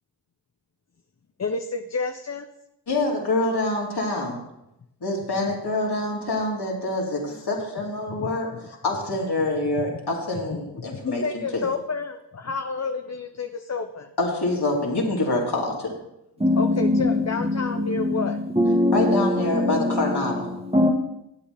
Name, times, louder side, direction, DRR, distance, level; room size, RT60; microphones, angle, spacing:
voice 1, 1.4-2.5 8.1-8.3 8.6-8.7 10.7-14.1 16.6-18.4, left 4 dB, 35° left, 6 dB, 0.7 m, -30 dB
voice 2, 2.9-4.4 5.0-11.6 14.2-15.9 18.9-20.5, left 2 dB, 55° left, -2 dB, 3.0 m, -26 dB
voice 3, 16.4-20.9, left 1 dB, 15° right, 4 dB, 1.3 m, -23 dB
13.0 x 8.1 x 3.5 m, 0.85 s
cardioid pair, 45°, 45 cm